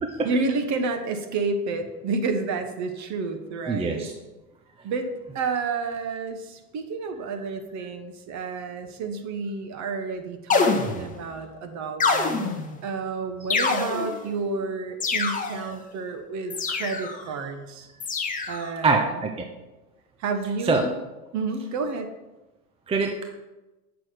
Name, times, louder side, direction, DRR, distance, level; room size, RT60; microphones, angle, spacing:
voice 1, 0.2-4.1 4.8-17.9 18.5-19.1 20.2-21.0 21.3-22.1, right 4 dB, 35° right, 6 dB, 1.3 m, -30 dB
voice 2, 3.7-4.1 18.8-19.5 20.6-20.8 22.9-23.2, right 4 dB, 10° right, 3 dB, 0.6 m, -23 dB
sound 1, 10.5-11.3 12.0-12.8 13.5-14.3 15.0-15.7 16.5-17.3 18.0-18.7, left 4 dB, 15° left, 1.0 m, -25 dB
8.1 x 6.1 x 5.0 m, 1.1 s
hypercardioid pair, 100°, 47 cm